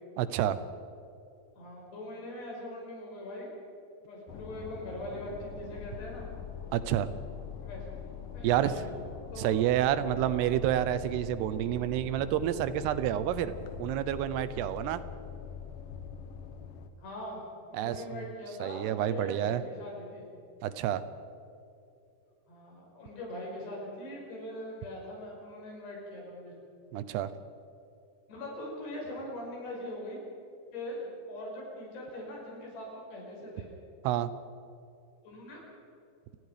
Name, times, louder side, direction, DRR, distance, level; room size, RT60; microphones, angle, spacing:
voice 1, 0.2-0.6 6.7-7.1 8.4-8.7 9.4-13.5 13.8-15.0 17.7-18.2 18.6-19.6 20.6-21.0 26.9-27.3 34.0-34.3, right 12 dB, 80° right, 14 dB, 2.9 m, -29 dB
voice 2, 1.6-3.5 4.0-6.3 7.6-7.9 8.3-8.8 9.3-9.6 17.0-17.4 17.7-20.3 22.5-26.5 28.3-30.2 30.7-33.7 35.2-35.6, left 1 dB, 85° left, -2 dB, 8.1 m, -41 dB
sound 1, 4.3-16.9, left 7 dB, 65° left, 2.3 m, -43 dB
29.0 x 20.5 x 5.1 m, 2.7 s
omnidirectional pair, 4.7 m